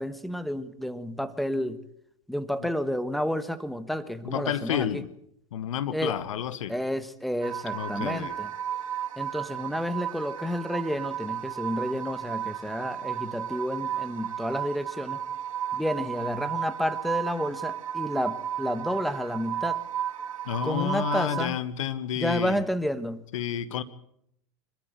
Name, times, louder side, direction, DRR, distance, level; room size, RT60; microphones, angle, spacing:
voice 1, 0.0-1.8 2.3-5.0 5.9-6.2 6.7-8.5 9.2-15.2 15.7-19.8 20.6-21.6 22.2-23.2, equal, ahead, 13 dB, 1.4 m, -30 dB
voice 2, 4.2-5.1 5.5-6.7 7.7-8.4 20.4-22.6 23.3-23.8, left 10 dB, 75° left, 15 dB, 1.5 m, -30 dB
sound 1, 7.4-21.5, right 9 dB, 85° right, 2.2 m, -34 dB
26.0 x 13.0 x 9.2 m, 0.75 s
hypercardioid pair, 105°, 17 cm